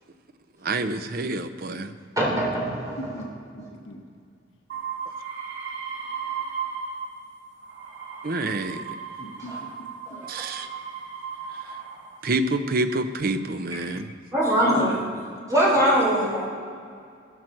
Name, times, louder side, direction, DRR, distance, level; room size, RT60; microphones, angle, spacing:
voice 1, 0.6-1.9 8.2-8.9 10.3-10.7 12.2-14.1, right 2 dB, 50° right, 9 dB, 0.7 m, -27 dB
voice 2, 2.2-3.1 9.5-9.6 10.1-10.5 14.3-15.0 15.5-16.5, right 1 dB, 20° right, -4 dB, 3.8 m, -22 dB
voice 3, 3.0-4.0 9.2-9.7 14.5-15.0, left 1 dB, 75° left, 0 dB, 1.4 m, -35 dB
sound 1, 4.7-7.2 7.6-12.1 12.9-13.5, right 6 dB, 75° right, 2.7 m, -36 dB
14.0 x 14.0 x 4.5 m, 2.2 s
head